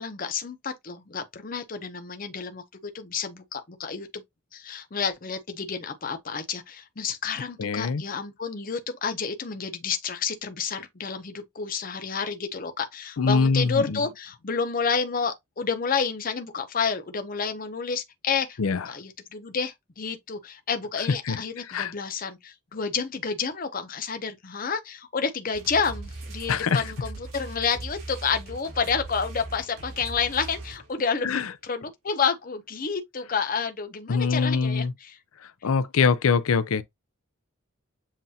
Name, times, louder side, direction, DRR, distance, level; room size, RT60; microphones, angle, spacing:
voice 1, 0.0-4.2 4.5-18.6 18.8-35.1, left 5 dB, 40° left, 0.7 m, -30 dB
voice 2, 7.6-8.0 13.2-14.0 18.6-18.9 21.1-21.9 26.5-26.8 31.2-31.5 34.1-34.9 35.4-36.8, left 5 dB, 90° left, 0.5 m, -24 dB
sound 1, 25.5-31.1, right 2 dB, 85° right, 2.6 m, -40 dB
7.4 x 2.5 x 2.8 m
head